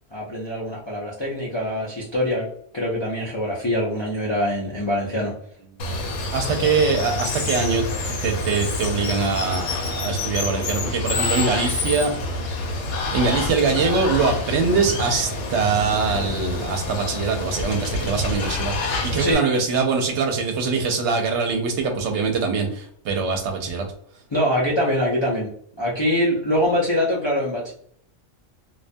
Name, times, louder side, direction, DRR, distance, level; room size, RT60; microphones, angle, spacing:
voice 1, 0.1-2.5 2.7-5.3 19.2-19.4 24.3-25.5 25.8-27.7, equal, 45° left, -6 dB, 0.3 m, -23 dB
Water, 5.8-19.3, left 3 dB, 85° left, 1.0 m, -27 dB
voice 2, 6.3-12.1 13.1-18.8 19.0-23.9, right 4 dB, 70° right, 3 dB, 0.8 m, -23 dB
2.3 x 2.2 x 2.6 m, 0.63 s
omnidirectional pair, 1.3 m